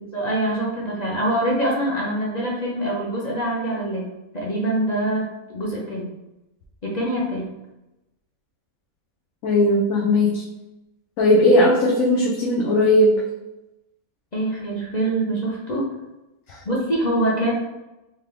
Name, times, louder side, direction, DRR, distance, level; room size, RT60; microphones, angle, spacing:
voice 1, 0.1-4.1 4.3-5.3 5.5-6.1 6.8-7.5 14.3-15.9 16.6-17.5, right 1 dB, 40° left, -4 dB, 0.6 m, -24 dB
voice 2, 9.4-10.4 11.2-13.2 16.5-16.6, left 1 dB, 70° left, -5 dB, 1.1 m, -17 dB
3.7 x 3.0 x 3.3 m, 0.97 s
omnidirectional pair, 1.5 m